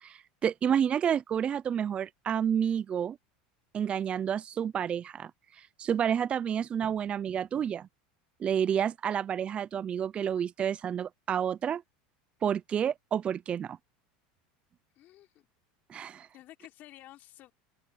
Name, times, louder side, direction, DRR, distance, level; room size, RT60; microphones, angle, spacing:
voice 1, 0.0-3.2 3.7-7.9 8.4-11.8 12.4-13.8 15.9-16.3, right 8 dB, 30° right, 0.4 m, -30 dB
voice 2, 14.9-15.5 16.3-17.5, left 14 dB, 50° left, 3.3 m, -52 dB
supercardioid pair, 120°, 4 cm